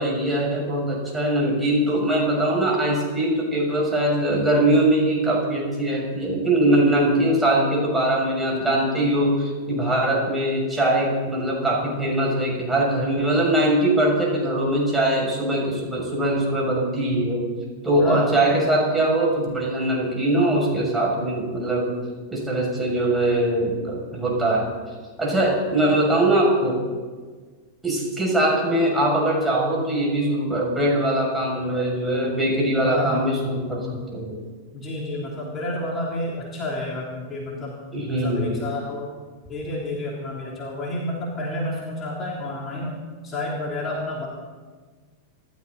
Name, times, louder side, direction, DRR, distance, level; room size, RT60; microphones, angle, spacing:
voice 1, 0.0-17.5 17.8-22.0 22.3-24.7 25.2-26.8 27.8-33.8 34.1-34.4 37.9-38.6, right 1 dB, 10° right, -3 dB, 6.6 m, -22 dB
voice 2, 18.0-18.3 25.8-26.0 32.9-33.3 33.8-34.1 34.7-37.8 38.2-39.1 39.5-44.3, left 1 dB, 25° left, -3 dB, 3.4 m, -30 dB
27.0 x 13.0 x 4.1 m, 1.5 s
figure-of-eight pair, 90°, 0 cm